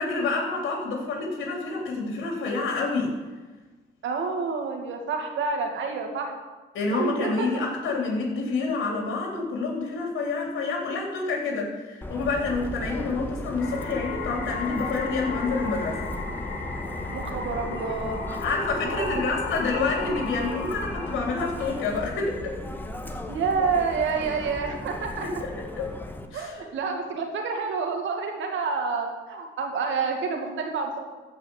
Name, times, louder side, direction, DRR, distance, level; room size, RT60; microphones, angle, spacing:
voice 1, 0.0-3.1 6.7-16.0 18.4-22.5 25.2-25.9 26.3-26.7, left 3 dB, 80° left, -1 dB, 3.7 m, -28 dB
voice 2, 4.0-6.3 6.9-7.5 17.1-18.3 18.8-19.3 23.3-25.4 26.3-31.0, right 5 dB, 75° right, 2 dB, 2.3 m, -28 dB
Subway metro underground, 12.0-26.3, left 1 dB, 10° left, 1.4 m, -36 dB
sound 1, 13.6-22.0, left 5 dB, 55° left, 2.3 m, -36 dB
15.0 x 5.6 x 7.2 m, 1.3 s
cardioid pair, 90°, 20 cm